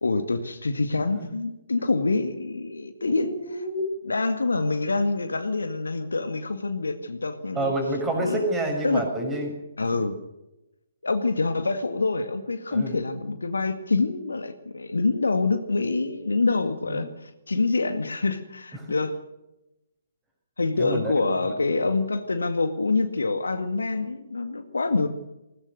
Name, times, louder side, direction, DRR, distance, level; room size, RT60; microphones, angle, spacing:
voice 1, 0.0-3.6 4.1-7.7 8.2-8.4 8.8-9.0 9.8-10.2 11.0-19.1 20.6-25.1, left 3 dB, 70° left, 8 dB, 1.9 m, -26 dB
voice 2, 3.1-3.9 7.5-9.6 12.7-13.0 16.9-17.1 18.7-18.9 20.8-21.5 24.9-25.1, right 1 dB, 10° right, 2 dB, 6.1 m, -29 dB
21.0 x 19.0 x 6.6 m, 0.95 s
figure-of-eight pair, 135°, 0 cm